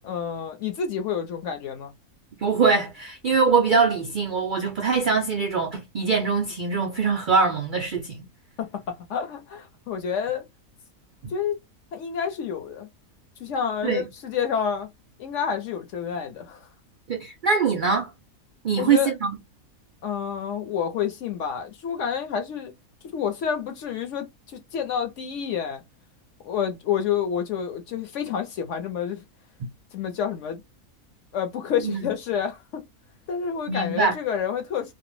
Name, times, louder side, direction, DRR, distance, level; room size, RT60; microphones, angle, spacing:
voice 1, 0.0-1.9 8.6-10.4 11.3-11.6 11.9-12.9 13.4-14.9 15.2-16.6 18.8-19.1 20.0-22.7 23.1-25.8 26.4-29.2 29.9-30.6 31.3-32.8 33.3-34.9, left 7 dB, 65° left, 0.9 m, -29 dB
voice 2, 2.4-8.2 13.8-14.0 17.1-18.1 18.6-19.4 31.8-32.1 33.7-34.1, right 5 dB, 80° right, 0.4 m, -23 dB
2.5 x 2.0 x 3.0 m
omnidirectional pair, 1.5 m